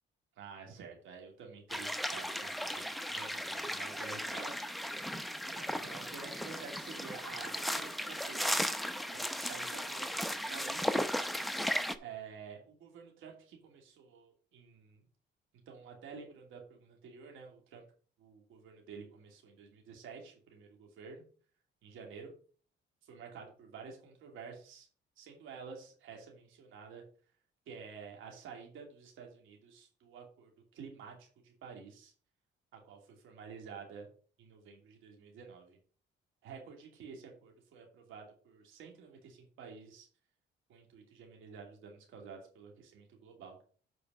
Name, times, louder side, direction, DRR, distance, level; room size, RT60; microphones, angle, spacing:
voice 1, 0.4-4.7 5.6-8.6 9.1-11.0 12.0-15.1 15.7-17.8 18.2-21.2 21.8-22.3 23.0-24.9 25.2-27.0 27.7-32.1 32.7-34.1 34.4-35.8 36.4-40.1 40.7-43.6, right 6 dB, 85° right, 2 dB, 2.7 m, -50 dB
sound 1, 1.7-12.0, equal, ahead, 0.8 m, -36 dB
8.7 x 4.7 x 5.4 m, 0.41 s
cardioid pair, 90°, 20 cm